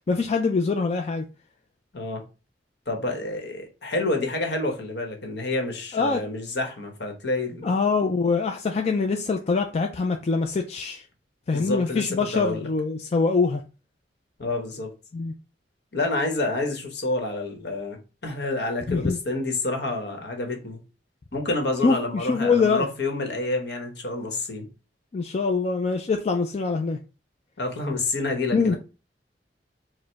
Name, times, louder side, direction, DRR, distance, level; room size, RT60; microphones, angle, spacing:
voice 1, 0.1-1.2 5.9-6.2 7.6-11.0 11.5-13.6 15.1-15.3 18.9-19.2 21.8-22.9 25.1-27.0 28.5-28.7, left 4 dB, 35° left, 0.4 m, -24 dB
voice 2, 2.9-7.7 11.5-12.7 14.4-14.9 15.9-20.8 21.3-24.7 27.6-28.8, left 2 dB, 65° left, 1.2 m, -28 dB
4.8 x 2.2 x 4.5 m
head